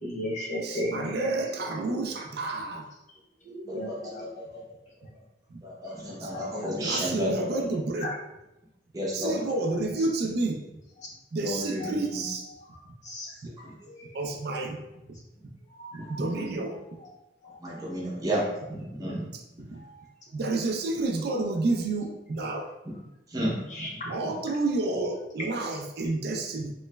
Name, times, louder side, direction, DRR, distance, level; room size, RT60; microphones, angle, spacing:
voice 1, 0.0-1.7 3.6-4.2 6.3-7.3 8.0-8.2 9.4-10.1 11.6-12.6 13.0-13.3 13.8-14.2 15.7-16.8 17.7-18.2 19.7-20.0 20.9-21.0 23.7-24.0, left 1 dB, 40° left, -3 dB, 0.6 m, -38 dB
voice 2, 0.6-2.9 3.4-4.3 6.2-6.3 6.8-8.1 9.1-10.8 11.3-12.5 14.1-14.8 15.1-15.2 15.9-16.8 19.7-19.8 20.3-22.7 24.1-26.7, right 2 dB, 60° right, 2 dB, 0.4 m, -30 dB
voice 3, 3.7-4.3 4.5-4.6 5.6-7.7 8.9-9.3 11.4-12.2 13.6-13.7 16.0-16.1 16.3-16.5 17.6-19.2 23.3-23.8, equal, 20° right, -5 dB, 0.7 m, -32 dB
3.1 x 3.0 x 2.2 m, 0.95 s
head